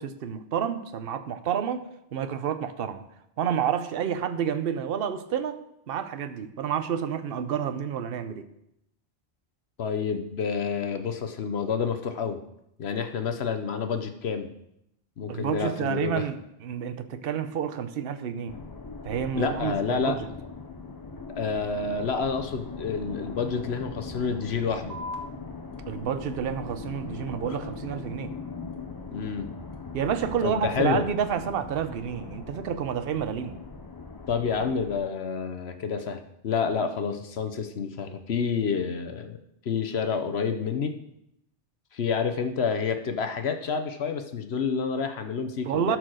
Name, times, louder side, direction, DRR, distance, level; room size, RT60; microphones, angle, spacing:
voice 1, 0.0-1.9 2.1-3.0 3.4-5.6 5.9-8.5 15.3-18.6 19.0-20.3 25.9-28.3 29.9-33.6 45.7-46.0, right 8 dB, 60° right, 11 dB, 0.9 m, -29 dB
voice 2, 9.8-12.4 12.8-14.5 15.2-16.3 19.3-20.2 21.4-25.0 27.5-27.6 29.1-29.5 30.4-31.1 34.3-39.4 39.6-40.9 41.9-46.0, left 5 dB, 65° left, 7 dB, 1.0 m, -29 dB
sound 1, 18.5-35.0, left 4 dB, 30° left, 0.4 m, -40 dB
sound 2, 24.9-31.9, left 2 dB, 35° right, 1.3 m, -47 dB
12.5 x 4.7 x 6.3 m, 0.79 s
omnidirectional pair, 1.2 m